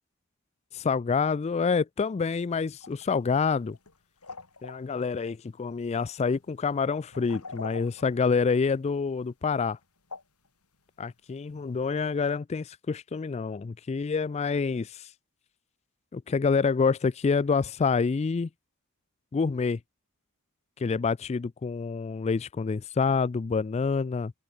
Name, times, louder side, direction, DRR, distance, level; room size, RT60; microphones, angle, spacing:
voice 1, 0.7-3.8 4.6-9.8 11.0-15.1 16.1-18.5 19.3-19.8 20.8-24.3, left 5 dB, 30° left, 0.3 m, -27 dB
sound 1, 2.8-3.1 3.3-4.0 4.2-4.9 5.9-6.0 6.3-6.6 7.1-8.7 9.6-9.8 10.1-10.5 11.1-11.2 11.6-11.7 12.3-12.4, left 3 dB, 85° left, 5.8 m, -43 dB
open air
head